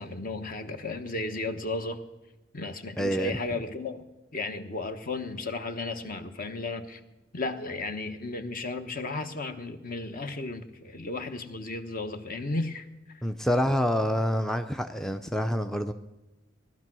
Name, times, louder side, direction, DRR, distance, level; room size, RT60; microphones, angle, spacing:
voice 1, 0.0-2.0 2.5-4.1 4.3-7.0 7.3-12.9 13.1-13.3, left 3 dB, 50° left, 8 dB, 1.1 m, -34 dB
voice 2, 3.0-3.4 13.2-15.9, equal, ahead, 8 dB, 0.5 m, -27 dB
18.0 x 12.0 x 6.2 m, 1.0 s
head